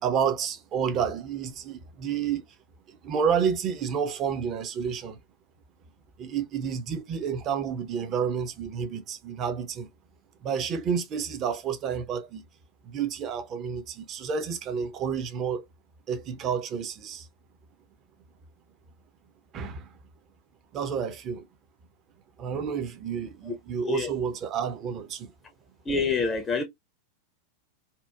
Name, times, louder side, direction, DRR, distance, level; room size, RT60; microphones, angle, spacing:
voice 1, 0.0-2.4 2.9-5.2 6.2-9.9 10.4-12.4 12.8-15.6 16.1-17.3 19.5-19.9 20.7-21.5 22.4-25.3, right 7 dB, 30° right, 0.5 m, -30 dB
voice 2, 23.8-24.1 25.9-26.6, left 4 dB, 20° left, 0.5 m, -26 dB
2.8 x 2.0 x 2.2 m
figure-of-eight pair, 90°, 0 cm